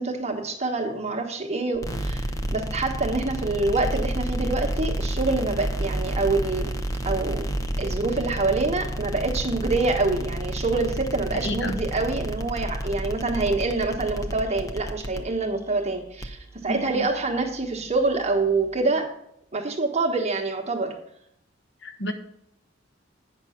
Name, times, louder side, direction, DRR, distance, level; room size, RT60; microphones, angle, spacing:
voice 1, 0.0-6.7 7.0-7.5 7.8-19.1 19.5-20.9, right 3 dB, 35° right, 2 dB, 1.2 m, -26 dB
sound 1, 1.7-18.8, right 1 dB, 20° left, 0.7 m, -31 dB
voice 2, 11.4-11.8 16.7-17.0 21.8-22.1, left 1 dB, 65° left, 5 dB, 1.3 m, -30 dB
9.3 x 6.0 x 5.7 m, 0.75 s
head